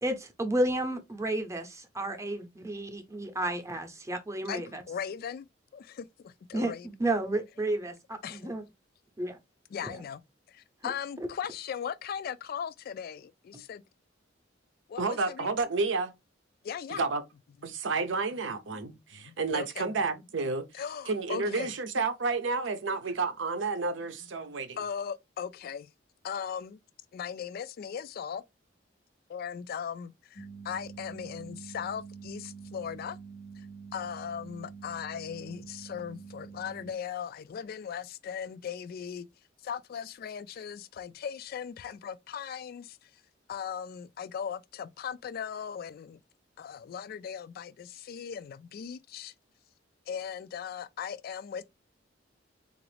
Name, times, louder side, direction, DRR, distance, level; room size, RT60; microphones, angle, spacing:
voice 1, 0.0-1.7 2.0-4.8 6.5-7.9 8.3-8.7 9.2-9.4 9.8-10.0, right 1 dB, 15° right, 0.7 m, -31 dB
voice 2, 4.5-5.5 5.7-6.9 8.2-8.6 9.7-10.2 10.5-13.8 14.9-15.5 16.6-17.0 19.1-20.0 20.7-21.7 24.8-25.9 26.2-26.8 27.1-28.4 29.3-33.2 33.6-33.7 33.9-39.3 39.6-43.1 43.5-46.2 46.6-49.3 50.1-51.6, left 7 dB, 50° left, 0.3 m, -38 dB
voice 3, 15.0-16.1 16.9-17.2 17.6-20.7 21.1-24.8, right 4 dB, 75° right, 0.6 m, -30 dB
sound 1, 30.4-36.9, right 5 dB, 75° left, 0.9 m, -46 dB
3.8 x 2.5 x 3.2 m
head